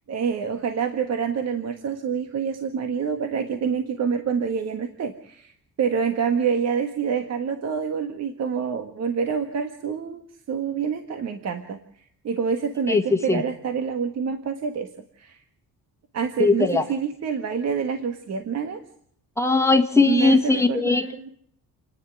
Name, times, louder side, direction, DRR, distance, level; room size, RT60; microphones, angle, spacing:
voice 1, 0.1-11.8 12.2-14.9 15.2-15.4 16.1-18.8 20.1-21.3, right 6 dB, 45° right, 7 dB, 1.7 m, -27 dB
voice 2, 16.4-16.9 19.4-21.0, left 3 dB, 10° left, 5 dB, 1.7 m, -19 dB
29.5 x 10.5 x 9.3 m, 0.67 s
cardioid pair, 175°, 35 cm